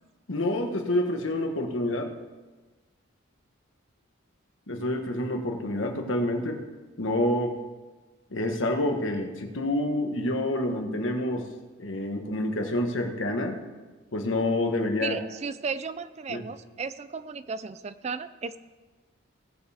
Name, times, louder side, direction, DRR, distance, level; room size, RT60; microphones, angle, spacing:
voice 1, 0.3-2.1 4.7-6.6 7.0-7.6 8.3-11.5 11.8-13.6 14.1-15.2 16.3-16.4, left 1 dB, 70° left, 3 dB, 1.4 m, -28 dB
voice 2, 15.0-18.6, right 5 dB, 35° right, 13 dB, 0.3 m, -34 dB
18.5 x 7.0 x 3.5 m, 1.2 s
head